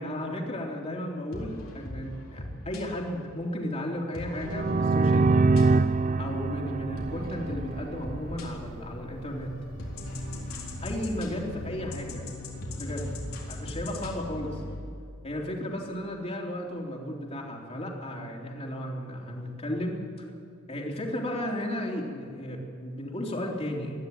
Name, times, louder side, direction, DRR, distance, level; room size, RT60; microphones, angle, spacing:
voice 1, 0.0-5.5 6.2-9.6 10.8-12.3 12.8-13.1 13.5-14.6 15.2-20.0 20.7-23.9, left 1 dB, 30° left, -1 dB, 3.3 m, -34 dB
sound 1, 1.3-2.8 4.1-6.0 7.0-8.4 9.1-14.8, left 1 dB, 75° left, 4.1 m, -39 dB
sound 2, 4.4-12.3, equal, 50° left, 2.4 m, -44 dB
sound 3, 4.4-8.2, right 3 dB, 35° right, 0.4 m, -24 dB
21.5 x 13.5 x 9.3 m, 2.6 s
head